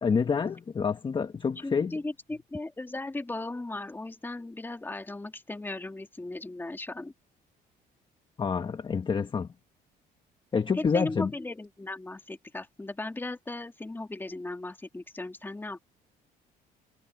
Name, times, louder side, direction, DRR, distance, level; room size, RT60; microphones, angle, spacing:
voice 1, 0.0-2.0 8.4-9.5 10.5-11.3, left 5 dB, 30° left, 1.3 m, -27 dB
voice 2, 1.6-7.1 10.7-15.8, left 2 dB, 10° left, 2.4 m, -37 dB
cardioid pair, 110°, 17 cm